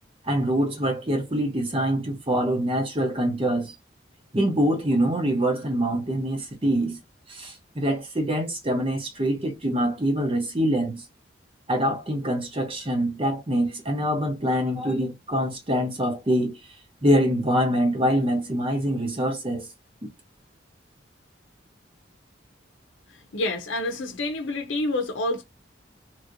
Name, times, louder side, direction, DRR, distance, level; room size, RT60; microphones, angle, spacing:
voice 1, 0.2-3.8 4.3-7.0 7.3-11.0 11.7-16.6 17.0-19.7, equal, 30° right, 0.9 m, -24 dB
voice 2, 23.1-25.4, left 2 dB, 85° left, 0.6 m, -28 dB
3.0 x 2.8 x 2.6 m
head